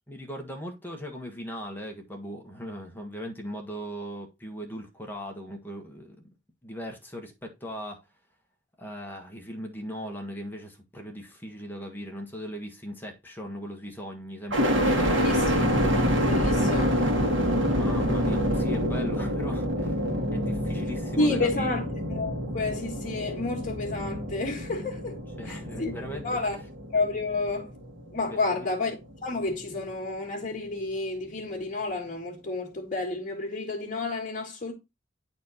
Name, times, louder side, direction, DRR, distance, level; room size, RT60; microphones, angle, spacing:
voice 1, 0.1-6.2 6.6-8.0 8.8-15.4 17.7-21.7 25.4-26.7 28.6-28.7, equal, 10° left, 1.6 m, -38 dB
sound 1, 14.5-28.5 29.0-29.7, equal, 70° right, 2.1 m, -27 dB
voice 2, 15.2-15.7 16.2-17.0 21.2-25.2 25.4-26.0 26.2-26.6 26.9-27.7 28.1-29.0 29.2-34.7, left 3 dB, 40° left, 2.0 m, -30 dB
10.5 x 4.4 x 4.1 m
head